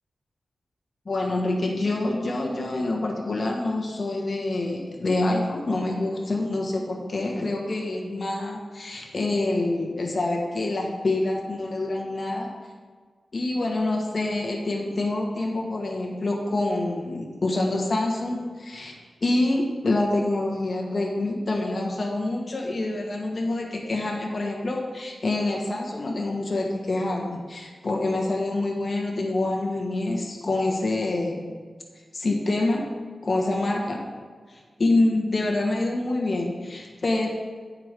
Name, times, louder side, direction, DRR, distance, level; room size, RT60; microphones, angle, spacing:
voice 1, 1.0-12.5 13.3-18.9 19.2-31.5 32.1-32.8 33.2-34.0 34.5-37.3, left 2 dB, 50° left, -1 dB, 1.4 m, -26 dB
9.0 x 5.0 x 5.2 m, 1.5 s
cardioid pair, 65°, 0 cm